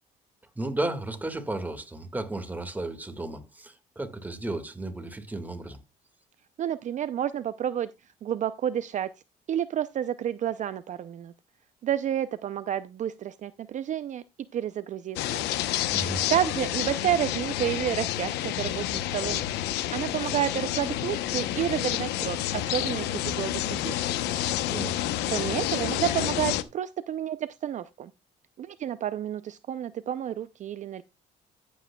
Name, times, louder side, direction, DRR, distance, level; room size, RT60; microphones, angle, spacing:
voice 1, 0.6-5.8 15.9-16.2 24.7-25.0, right 2 dB, 10° right, 1.8 m, -34 dB
voice 2, 6.6-7.9 8.2-9.1 9.5-11.3 11.8-14.2 14.5-15.4 16.3-19.4 19.9-24.1 25.3-28.1 28.6-31.0, right 10 dB, 45° right, 0.5 m, -30 dB
sound 1, 15.2-26.6, left 13 dB, 90° left, 0.8 m, -29 dB
14.0 x 8.4 x 2.3 m
cardioid pair, 110°, 17 cm